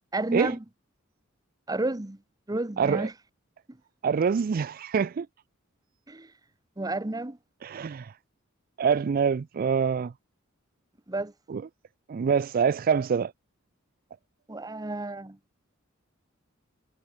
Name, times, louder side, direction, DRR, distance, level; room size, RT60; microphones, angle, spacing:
voice 1, 0.1-0.6 1.7-2.2 2.5-3.1 6.1-6.3 6.8-7.4 11.1-11.3 14.5-15.4, right 2 dB, 20° right, 0.9 m, -31 dB
voice 2, 2.8-3.1 4.0-5.3 7.6-8.1 8.8-10.1 11.5-11.7 12.1-13.3, right 6 dB, 45° right, 0.3 m, -25 dB
head